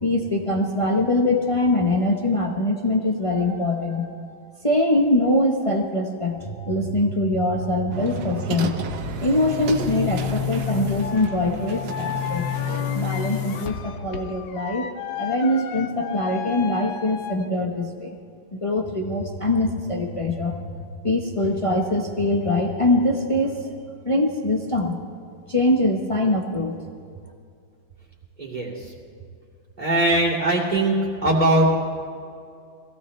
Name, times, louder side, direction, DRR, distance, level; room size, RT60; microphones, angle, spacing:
voice 1, 0.0-4.4 4.6-12.5 12.9-14.9 15.2-18.1 18.5-23.7 24.0-25.0 25.5-26.8, left 1 dB, 35° left, 1 dB, 0.5 m, -23 dB
sound 1, 7.9-13.7, right 6 dB, 65° right, 1.4 m, -34 dB
Boom, 8.8-14.6, left 10 dB, 65° left, 1.7 m, -31 dB
sound 2, 11.0-17.5, left 8 dB, 85° left, 1.6 m, -34 dB
voice 2, 28.4-28.9 29.8-30.9 31.2-31.8, right 1 dB, 20° right, -3 dB, 2.6 m, -20 dB
22.0 x 16.5 x 3.2 m, 2.4 s
omnidirectional pair, 2.2 m